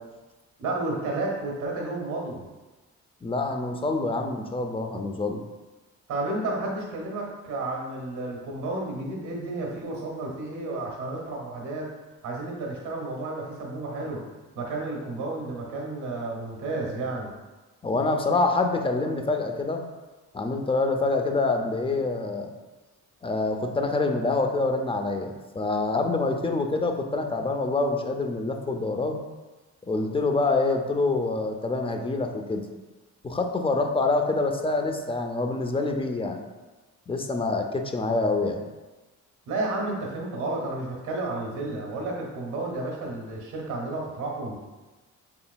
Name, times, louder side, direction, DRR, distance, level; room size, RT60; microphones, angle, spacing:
voice 1, 0.6-2.4 6.1-11.9 12.2-14.2 14.5-17.3 39.5-44.6, right 2 dB, 85° right, -2 dB, 1.2 m, -31 dB
voice 2, 3.2-5.4 17.8-19.8 20.3-22.5 23.2-29.2 29.9-32.6 33.2-36.4 37.1-38.6, left 3 dB, 20° left, 4 dB, 0.6 m, -26 dB
5.7 x 3.7 x 2.3 m, 1.2 s
cardioid pair, 90°, 30 cm